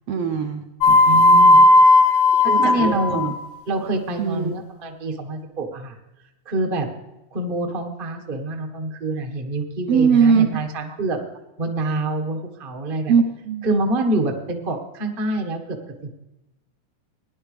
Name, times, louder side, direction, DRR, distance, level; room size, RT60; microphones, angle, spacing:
voice 1, 0.1-0.6 2.3-3.3 4.2-4.5 9.9-10.5 13.1-13.7, right 6 dB, 75° right, 4 dB, 1.5 m, -20 dB
sound 1, 0.8-3.4, left 2 dB, 75° left, 2.2 m, -14 dB
voice 2, 0.9-1.6 2.1-3.2 3.7-6.0 6.4-6.9 7.3-11.2 11.6-13.1 13.6-15.8 16.0-16.1, right 2 dB, 45° right, 3 dB, 0.6 m, -26 dB
18.5 x 10.5 x 3.3 m, 0.94 s
omnidirectional pair, 3.4 m